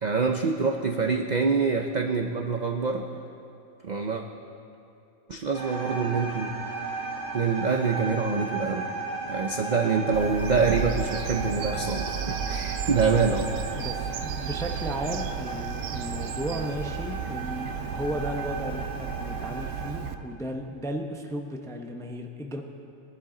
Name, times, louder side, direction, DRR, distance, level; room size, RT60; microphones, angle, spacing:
voice 1, 0.0-3.1 3.8-4.2 5.3-6.5 7.3-8.9 9.3-13.5, right 5 dB, 55° right, 3 dB, 0.5 m, -25 dB
sound 1, 5.5-20.0, right 3 dB, 30° right, 2.2 m, -35 dB
Bird vocalization bird call bird song, 10.1-20.2, right 8 dB, 80° right, 1.1 m, -34 dB
voice 2, 13.7-22.6, equal, 5° left, 3 dB, 0.5 m, -34 dB
20.0 x 11.0 x 3.8 m, 2.7 s
omnidirectional pair, 1.5 m